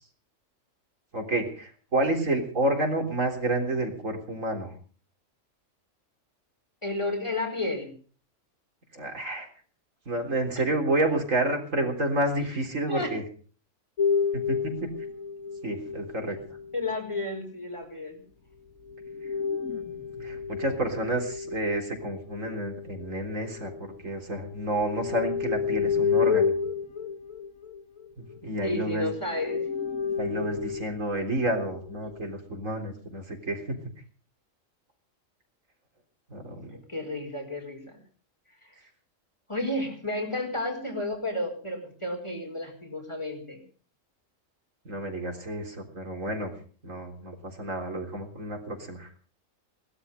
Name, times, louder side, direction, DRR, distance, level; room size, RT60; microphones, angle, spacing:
voice 1, 1.1-4.7 8.9-9.5 10.1-13.2 14.3-14.7 15.6-16.4 19.2-19.3 19.7-19.8 20.2-23.7 24.0-26.5 28.2-29.1 30.2-33.8 36.3-36.8 44.9-46.5 46.8-49.1, right 1 dB, 75° right, 3 dB, 4.1 m, -29 dB
voice 2, 6.8-7.9 12.9-13.1 16.7-18.2 28.6-29.6 36.7-38.0 39.5-43.6, left 2 dB, 20° left, 3 dB, 5.0 m, -32 dB
sound 1, 14.0-17.2 18.9-24.0 24.4-28.8 29.2-31.0 31.8-32.3, left 6 dB, 75° left, 1.8 m, -31 dB
20.5 x 13.0 x 5.5 m, 0.43 s
omnidirectional pair, 1.4 m